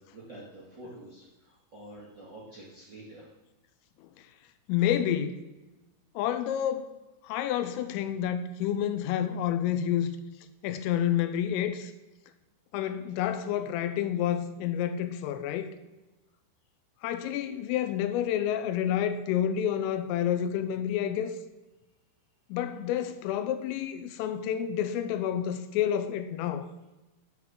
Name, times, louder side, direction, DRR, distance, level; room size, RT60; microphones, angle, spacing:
voice 1, 0.0-3.3, right 1 dB, 75° right, -7 dB, 1.0 m, -47 dB
voice 2, 4.7-5.4 6.2-6.9 7.2-10.1 10.6-11.9 12.7-15.7 17.0-21.4 22.5-26.7, left 10 dB, 90° left, 11 dB, 3.2 m, -29 dB
10.5 x 7.6 x 3.7 m, 1.1 s
omnidirectional pair, 5.8 m